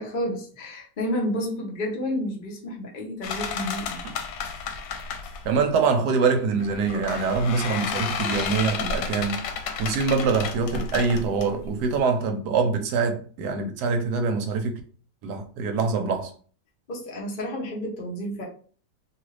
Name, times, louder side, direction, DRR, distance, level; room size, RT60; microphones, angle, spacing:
voice 1, 0.0-4.0 16.9-18.4, left 1 dB, 65° left, 0.5 m, -30 dB
sound 1, 3.2-5.6 6.6-12.0, left 6 dB, 85° left, 1.2 m, -32 dB
voice 2, 5.4-9.4 9.8-14.8 15.2-16.3, right 5 dB, 75° right, 1.0 m, -24 dB
2.8 x 2.4 x 3.2 m
omnidirectional pair, 1.9 m